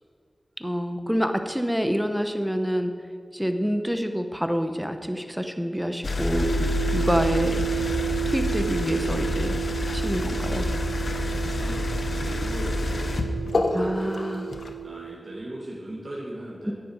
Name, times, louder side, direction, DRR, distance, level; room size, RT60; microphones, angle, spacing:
voice 1, 0.6-2.9 3.3-7.6 8.3-9.6 9.9-10.7 13.7-14.5 16.7-16.8, equal, 5° right, 7 dB, 0.9 m, -27 dB
sound 1, 6.0-14.7, left 2 dB, 75° left, 0.9 m, -27 dB
sound 2, 6.3-15.1, right 10 dB, 80° right, 2.8 m, -32 dB
voice 2, 12.1-14.1 14.8-16.7, right 1 dB, 55° right, -5 dB, 1.8 m, -39 dB
10.0 x 9.3 x 4.8 m, 2.3 s
wide cardioid pair, 60°, 0 cm